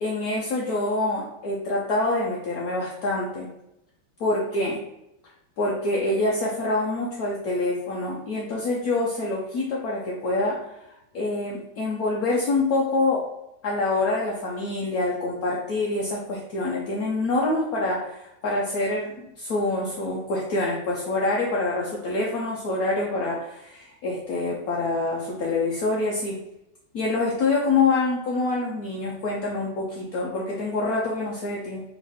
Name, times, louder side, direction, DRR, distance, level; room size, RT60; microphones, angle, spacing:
voice 1, 0.0-3.5 4.2-4.8 5.6-10.7 11.1-13.2 13.6-26.4 26.9-31.8, left 2 dB, 70° left, -3 dB, 0.9 m, -26 dB
3.9 x 3.5 x 3.4 m, 0.86 s
omnidirectional pair, 2.3 m